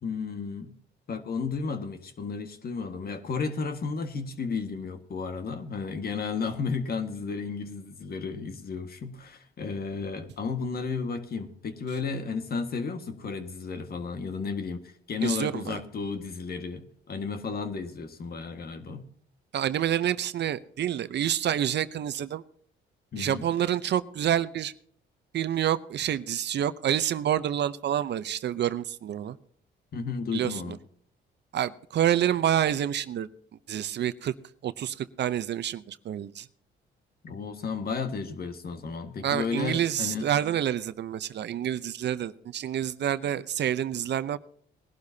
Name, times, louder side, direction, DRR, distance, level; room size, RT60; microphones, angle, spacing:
voice 1, 0.0-0.7 1.1-19.0 23.1-23.5 29.9-30.8 37.2-40.3, left 5 dB, 50° left, 7 dB, 1.7 m, -33 dB
voice 2, 15.2-15.8 19.5-22.4 23.2-24.7 25.3-29.4 30.3-30.8 31.5-33.3 33.7-34.3 34.6-36.5 39.2-44.4, right 10 dB, 60° right, 14 dB, 0.7 m, -28 dB
20.5 x 11.5 x 2.8 m, 0.62 s
cardioid pair, 90°, 20 cm